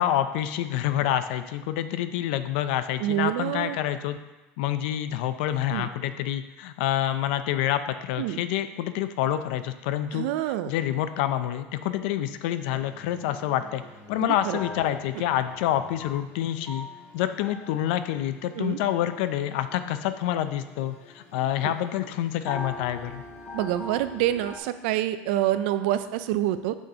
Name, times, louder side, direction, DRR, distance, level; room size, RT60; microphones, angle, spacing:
voice 1, 0.0-4.2 4.6-10.3 10.7-13.8 14.1-16.9 17.1-23.2, left 12 dB, 85° left, 11 dB, 0.5 m, -27 dB
voice 2, 3.0-3.8 5.7-5.9 8.2-8.4 10.1-10.7 14.2-14.6 18.6-18.8 21.6-21.7 23.5-26.8, right 13 dB, 85° right, 12 dB, 0.4 m, -27 dB
sound 1, 12.7-24.6, left 2 dB, 35° left, 1.4 m, -44 dB
8.5 x 6.3 x 2.9 m, 1.1 s
cardioid pair, 165°, 6 cm